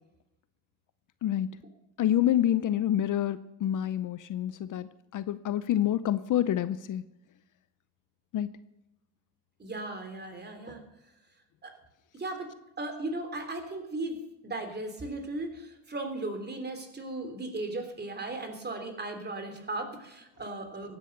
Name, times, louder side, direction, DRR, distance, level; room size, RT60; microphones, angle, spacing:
voice 1, 1.2-1.6 2.0-7.1 8.3-8.5, left 11 dB, 50° left, 14 dB, 0.7 m, -27 dB
voice 2, 9.6-10.8 11.6-11.7 12.1-14.2 14.4-21.0, right 2 dB, 25° right, 6 dB, 3.0 m, -37 dB
16.0 x 10.0 x 6.6 m, 0.91 s
cardioid pair, 100°, 41 cm